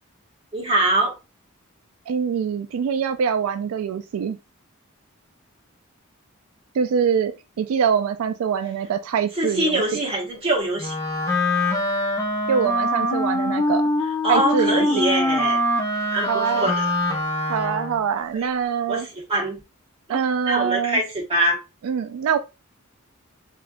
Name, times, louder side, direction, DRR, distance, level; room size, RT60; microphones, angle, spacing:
voice 1, 0.5-1.1 9.4-10.9 14.2-15.6 16.1-16.3 16.5-16.9 18.3-18.5 18.9-19.6 20.1-20.2 20.5-21.6, right 1 dB, 25° right, 1.3 m, -23 dB
voice 2, 2.1-4.4 6.7-7.3 7.6-10.0 12.5-13.8 14.3-14.9 16.3-16.7 17.5-19.1 20.1-21.0 21.8-22.4, right 7 dB, 80° right, 0.3 m, -24 dB
Wind instrument woodwind instrument, 10.8-18.0, left 1 dB, 15° left, 0.6 m, -23 dB
3.4 x 2.7 x 2.4 m
head